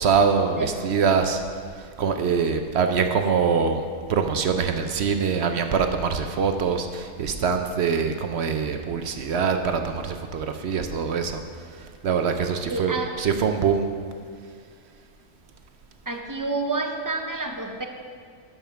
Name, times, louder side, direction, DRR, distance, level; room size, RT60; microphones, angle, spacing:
voice 1, 0.0-1.4 1.7-11.4 11.7-13.9, right 6 dB, 60° right, 6 dB, 0.8 m, -24 dB
voice 2, 0.6-0.9 12.7-13.1 16.1-17.8, right 3 dB, 20° right, 3 dB, 0.6 m, -29 dB
12.0 x 5.7 x 5.7 m, 2.1 s
omnidirectional pair, 1.4 m